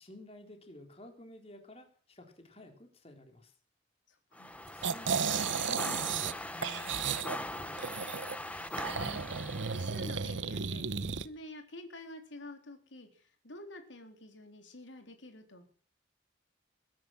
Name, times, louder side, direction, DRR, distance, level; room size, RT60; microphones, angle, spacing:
voice 1, 0.0-3.5 4.4-8.0, left 1 dB, 30° left, 4 dB, 3.8 m, -53 dB
voice 2, 4.1-4.5 8.5-15.7, left 1 dB, 85° left, 6 dB, 3.7 m, -49 dB
sound 1, 4.3-10.0, left 1 dB, 10° left, 1.2 m, -41 dB
sound 2, 4.8-6.3 6.6-8.4 8.8-11.3, right 6 dB, 90° right, 1.0 m, -34 dB
22.0 x 11.0 x 6.1 m, 0.43 s
head